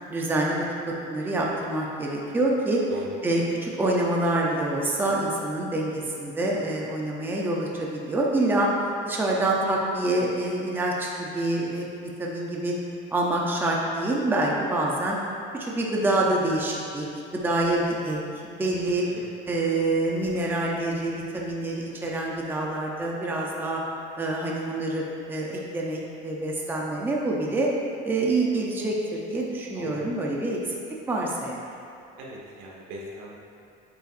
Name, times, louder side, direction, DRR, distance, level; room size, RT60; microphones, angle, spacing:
voice 1, 0.1-2.8 3.2-8.7 9.0-12.7 13.1-15.2 15.5-17.1 17.3-19.1 19.5-23.8 24.2-27.7 28.0-30.8 31.1-31.6, right 2 dB, 10° right, -2 dB, 0.6 m, -26 dB
voice 2, 32.2-33.3, right 2 dB, 85° right, -3 dB, 1.5 m, -38 dB
8.8 x 5.5 x 2.6 m, 2.7 s
cardioid pair, 155°, 21 cm